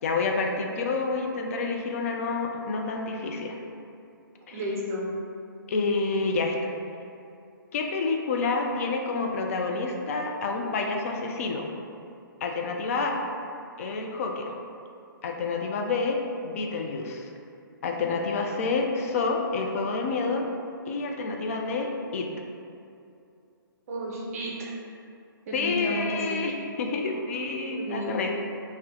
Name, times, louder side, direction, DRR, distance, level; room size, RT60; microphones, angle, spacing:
voice 1, 0.0-3.6 4.5-4.6 5.7-6.7 7.7-11.6 12.4-13.2 13.8-14.5 15.2-16.2 16.4-17.3 17.8-20.5 20.9-22.3 25.5-28.4, left 4 dB, 40° left, 2 dB, 0.3 m, -28 dB
voice 2, 4.5-5.1 23.9-24.7 25.5-26.4 27.7-28.2, right 1 dB, 40° right, -4 dB, 0.6 m, -32 dB
2.6 x 2.1 x 3.6 m, 2.5 s
figure-of-eight pair, 130°, 12 cm